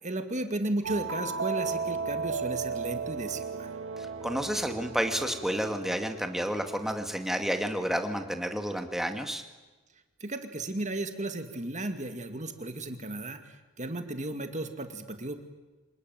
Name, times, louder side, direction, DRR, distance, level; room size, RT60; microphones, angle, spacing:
voice 1, 0.0-3.7 10.2-13.4 13.8-15.4, right 2 dB, 35° right, 7 dB, 2.3 m, -34 dB
sound 1, 0.8-7.3, right 5 dB, 55° right, 2.2 m, -35 dB
voice 2, 4.0-9.4, equal, ahead, 5 dB, 2.1 m, -30 dB
26.5 x 20.5 x 9.4 m, 1.2 s
head